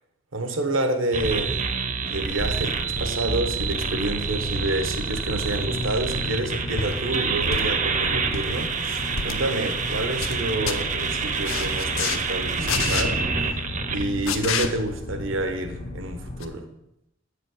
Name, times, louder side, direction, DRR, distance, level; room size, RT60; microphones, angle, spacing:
voice 1, 0.3-1.6 2.0-2.7 3.0-13.6 13.9-16.7, right 2 dB, 70° right, 6 dB, 1.1 m, -28 dB
sound 1, 1.1-14.0, right 4 dB, 40° right, 0.7 m, -27 dB
sound 2, 2.9-16.5, left 2 dB, 35° left, 0.5 m, -36 dB
sound 3, 6.8-7.0 7.5-7.9 8.2-8.5 9.1-9.4 9.9-10.4 10.7-10.8 11.4-12.2 12.7-13.1 14.3-14.7 16.4-16.5, left 6 dB, 90° left, 0.8 m, -28 dB
8.7 x 5.1 x 6.4 m, 0.83 s
head